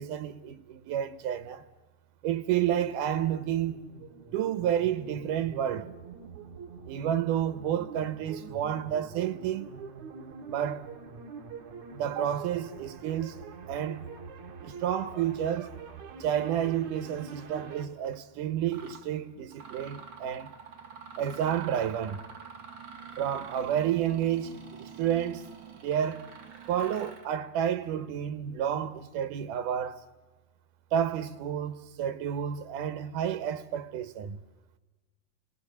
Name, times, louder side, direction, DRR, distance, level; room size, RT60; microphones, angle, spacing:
voice 1, 0.0-1.6 2.2-3.8 4.3-5.9 6.9-9.7 10.5-10.9 11.9-13.4 13.7-14.1 14.6-15.7 16.2-20.5 21.2-22.2 23.2-25.5 25.8-26.3 26.7-30.0 30.9-34.4, right 10 dB, 85° right, 2.6 m, -30 dB
sound 1, 2.7-17.9, right 5 dB, 70° right, 3.2 m, -45 dB
Mechanisms, 18.0-18.2 18.7-19.1 19.5-27.3, right 6 dB, 45° right, 2.2 m, -47 dB
29.0 x 19.0 x 7.0 m
omnidirectional pair, 3.6 m